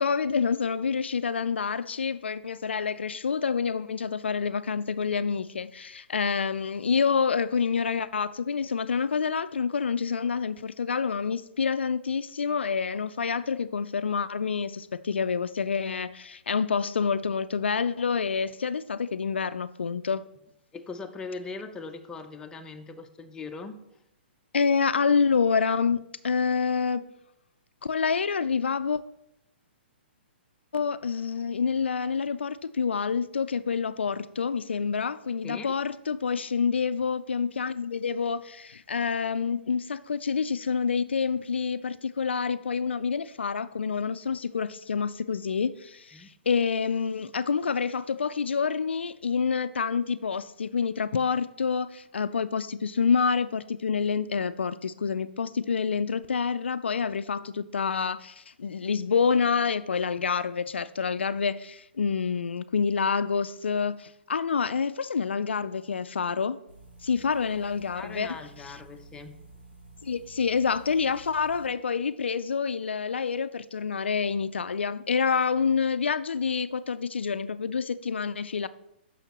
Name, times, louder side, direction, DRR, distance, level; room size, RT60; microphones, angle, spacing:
voice 1, 0.0-20.3 24.5-27.0 27.8-29.0 30.7-66.6 67.0-68.4 70.0-78.7, left 5 dB, 85° left, 0.4 m, -27 dB
voice 2, 20.7-23.8 35.4-35.7 46.1-46.3 67.9-69.4, left 4 dB, 10° left, 0.6 m, -40 dB
sound 1, 66.7-71.7, right 2 dB, 75° right, 2.7 m, -51 dB
8.9 x 6.3 x 3.0 m
hypercardioid pair, 125°, 6 cm